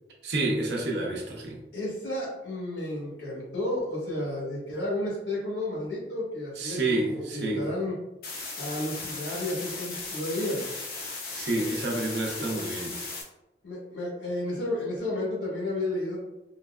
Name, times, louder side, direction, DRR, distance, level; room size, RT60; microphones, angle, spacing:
voice 1, 0.2-1.6 6.6-7.6 11.0-13.0, right 2 dB, 70° right, -1 dB, 0.7 m, -29 dB
voice 2, 1.7-8.0 8.6-10.6 12.4-12.5 13.6-16.2, left 1 dB, 85° left, -5 dB, 1.3 m, -32 dB
sound 1, 8.2-13.2, left 3 dB, 55° left, 0.6 m, -37 dB
3.9 x 2.1 x 2.3 m, 0.95 s
head